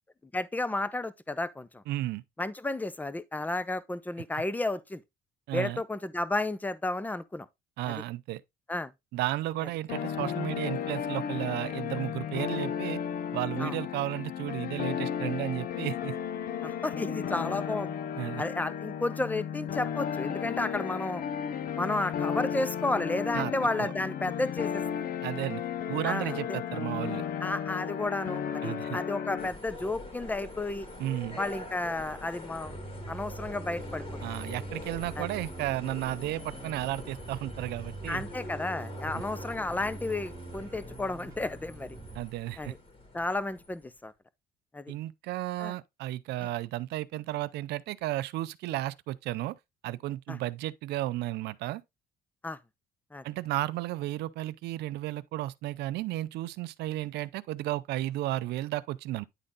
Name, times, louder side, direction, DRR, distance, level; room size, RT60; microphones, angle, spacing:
voice 1, 0.3-1.8 2.4-5.0 5.5-7.5 7.9-8.0 8.7-8.9 13.6-13.8 16.6-17.9 18.4-21.2 21.8-24.8 26.0-26.6 27.4-30.9 31.4-32.8 33.1-34.0 35.2-35.3 38.1-42.0 42.6-42.8 43.1-44.1 44.7-44.9 45.6-45.7 50.3-50.4 52.4-52.6 53.1-53.2, left 2 dB, 10° left, 0.6 m, -32 dB
voice 2, 1.9-2.2 5.5-5.8 7.8-8.4 9.1-13.0 13.3-16.1 18.2-18.4 23.3-23.5 23.8-23.9 25.2-25.6 25.9-27.3 28.6-29.0 31.0-31.4 34.2-38.2 39.1-39.2 42.1-42.7 44.9-49.5 49.8-51.8 53.2-59.2, right 15 dB, 80° right, 0.5 m, -33 dB
sound 1, 9.9-29.5, left 8 dB, 60° left, 0.7 m, -34 dB
sound 2, 29.4-43.8, left 2 dB, 35° left, 2.4 m, -44 dB
Bass guitar, 32.6-42.2, right 3 dB, 15° right, 1.3 m, -44 dB
9.9 x 4.0 x 3.7 m
cardioid pair, 110°, 17 cm